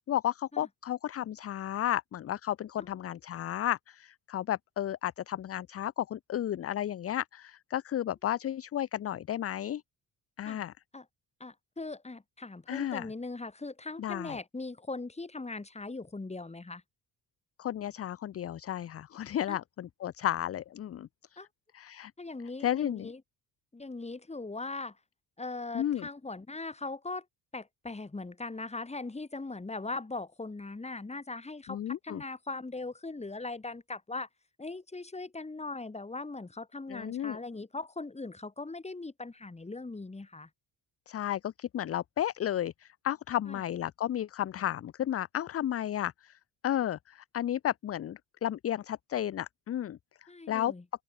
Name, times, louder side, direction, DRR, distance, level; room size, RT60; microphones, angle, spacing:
voice 1, 0.0-9.8 10.4-10.7 12.7-13.1 14.0-14.4 17.6-21.4 21.7-22.1 22.6-23.1 25.7-26.1 31.7-32.2 36.9-37.4 41.1-46.4 46.6-50.0 50.5-50.7, left 11 dB, 35° left, 0.5 m, -33 dB
voice 2, 11.4-16.8 19.5-19.6 21.4-21.5 22.2-23.2 23.7-25.0 25.4-27.2 27.5-34.3 34.6-40.5 43.5-43.6 50.3-50.8, left 3 dB, 15° left, 1.6 m, -40 dB
open air
supercardioid pair, 70°, 44 cm